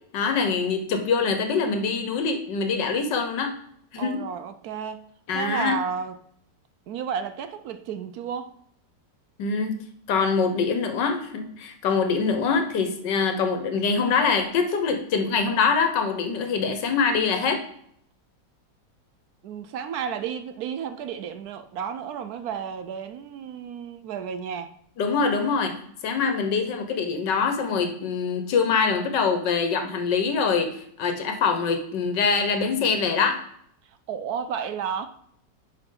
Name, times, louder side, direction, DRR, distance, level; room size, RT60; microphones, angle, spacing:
voice 1, 0.1-3.5 3.9-4.2 5.3-5.8 9.4-9.8 10.1-17.6 25.0-25.7 26.0-33.4, left 5 dB, 80° left, 1.7 m, -24 dB
voice 2, 4.0-6.2 6.9-8.5 19.4-24.7 34.1-35.1, right 7 dB, 70° right, 1.0 m, -32 dB
10.0 x 4.9 x 3.8 m
omnidirectional pair, 1.9 m